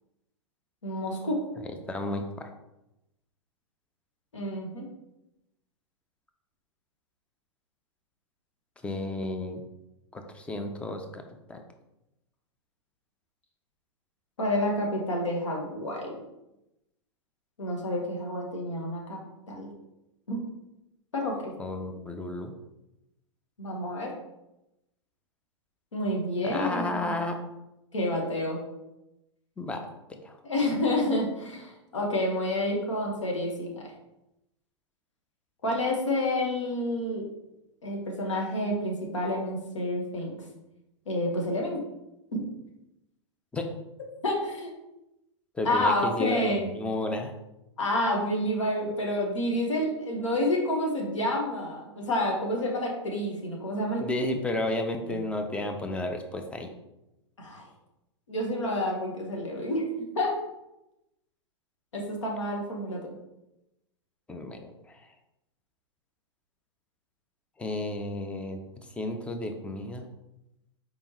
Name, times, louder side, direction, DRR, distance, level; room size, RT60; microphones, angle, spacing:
voice 1, 0.8-1.4 4.3-4.9 14.4-16.2 17.6-19.2 19.5-19.7 20.3-20.4 21.1-21.5 23.6-24.1 25.9-27.1 27.9-28.6 30.4-33.8 35.6-37.2 37.8-40.3 41.1-41.8 42.3-42.4 44.2-44.7 45.6-46.7 47.8-54.0 55.1-55.2 57.4-57.6 58.3-59.9 60.1-60.3 61.9-63.1, left 1 dB, 80° left, -1 dB, 1.3 m, -29 dB
voice 2, 1.6-2.5 8.8-9.6 10.1-11.6 21.6-22.5 26.4-27.4 29.6-29.8 30.1-30.4 43.5-43.7 45.5-47.3 54.0-56.7 64.3-65.1 67.6-70.1, left 2 dB, 5° left, 5 dB, 0.5 m, -32 dB
4.3 x 3.5 x 3.0 m, 0.91 s
hypercardioid pair, 105°, 15 cm